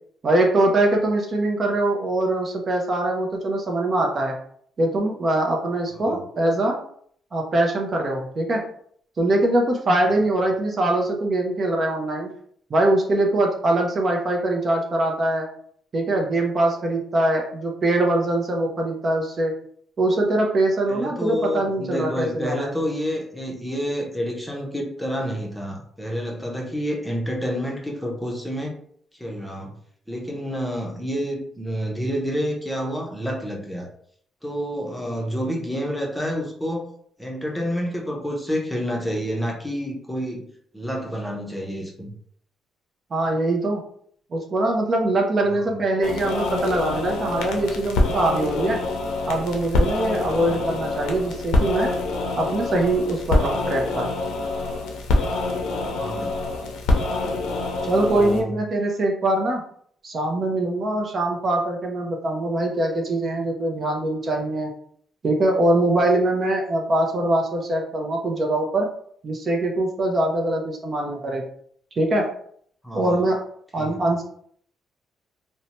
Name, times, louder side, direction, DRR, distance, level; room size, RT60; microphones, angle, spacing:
voice 1, 0.2-4.3 4.8-6.8 7.3-8.6 9.2-12.3 12.7-15.5 15.9-19.5 20.0-22.7 43.1-43.8 44.3-48.8 49.3-51.9 52.4-54.1 57.8-59.6 60.0-64.7 65.2-68.9 69.2-71.4 72.0-72.2 72.9-73.4 73.7-74.2, right 1 dB, 45° right, 1 dB, 0.6 m, -22 dB
voice 2, 20.9-28.7 29.1-29.8 30.1-33.9 34.4-36.9 37.2-40.5 40.7-42.1 45.5-45.8 50.2-50.6 56.0-56.4 57.9-58.6 72.8-73.2 73.8-74.1, equal, 5° left, -1 dB, 0.7 m, -29 dB
sound 1, 46.0-58.4, left 2 dB, 85° left, 0.6 m, -25 dB
2.6 x 2.1 x 2.9 m, 0.62 s
cardioid pair, 90°, 0 cm